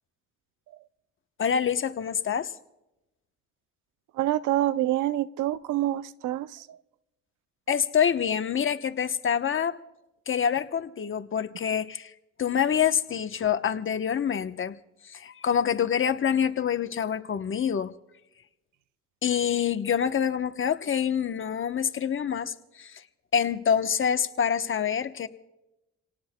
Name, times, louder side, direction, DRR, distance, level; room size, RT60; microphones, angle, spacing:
voice 1, 1.4-2.5 7.7-9.8 10.3-12.1 12.4-14.7 15.1-17.9 19.2-23.0 23.3-25.3, left 8 dB, 40° left, 9 dB, 0.9 m, -26 dB
voice 2, 4.2-6.8, right 14 dB, 90° right, 15 dB, 0.6 m, -27 dB
28.0 x 18.0 x 2.2 m, 0.93 s
cardioid pair, 90°, 30 cm